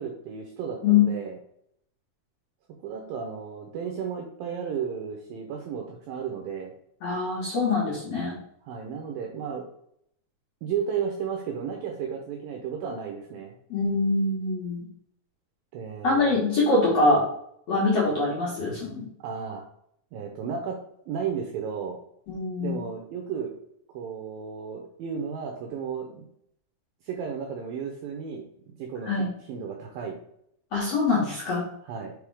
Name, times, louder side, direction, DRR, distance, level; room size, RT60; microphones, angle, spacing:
voice 1, 0.0-1.4 2.8-6.7 8.7-9.7 10.6-13.6 15.7-16.4 19.2-19.6 20.1-20.8 21.1-22.0 22.6-23.5 23.9-26.3 27.1-30.2 31.8-32.1, right 7 dB, 80° right, 2 dB, 2.1 m, -33 dB
voice 2, 7.0-8.4 13.7-14.8 16.0-17.3 17.7-19.1 22.3-22.8 29.1-29.3 30.7-31.6, left 3 dB, 55° left, -6 dB, 1.9 m, -24 dB
6.0 x 3.5 x 4.7 m, 0.71 s
omnidirectional pair, 4.9 m